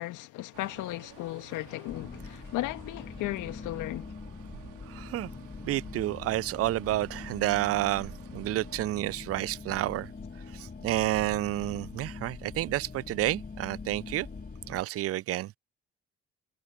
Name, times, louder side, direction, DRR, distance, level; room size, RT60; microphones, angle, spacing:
voice 1, 0.0-4.1, left 17 dB, 70° left, 2.0 m, -35 dB
sound 1, 0.5-8.8, right 17 dB, 70° right, 3.7 m, -53 dB
Telephone, 1.6-2.1 2.9-4.1 4.9-6.1 6.9-8.1 8.9-10.0 10.9-12.1 12.9-13.5, right 1 dB, 5° right, 6.2 m, -58 dB
sound 2, 1.9-14.8, left 4 dB, 30° left, 2.6 m, -43 dB
voice 2, 4.9-5.3 5.6-10.1 10.5-14.3 14.7-15.5, right 15 dB, 50° right, 0.5 m, -30 dB
hypercardioid pair, 45°, 31 cm